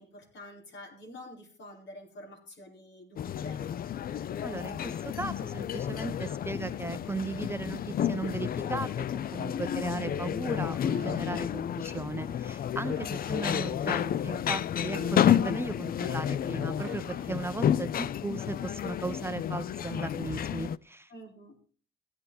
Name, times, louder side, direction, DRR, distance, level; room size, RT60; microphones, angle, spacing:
voice 1, 0.0-3.7 12.8-13.0 21.1-21.6, left 1 dB, 70° left, 0 dB, 4.4 m, -48 dB
sound 1, 3.2-20.8, left 10 dB, 50° left, 0.4 m, -31 dB
voice 2, 4.4-9.1 9.3-21.1, right 3 dB, 10° right, 9 dB, 0.8 m, -37 dB
sound 2, 10.9-11.5 12.8-13.5 14.8-15.8 16.8-17.5 18.7-18.9, right 10 dB, 75° right, 1.1 m, -50 dB
15.0 x 10.0 x 4.0 m, 0.41 s
cardioid pair, 90°, 20 cm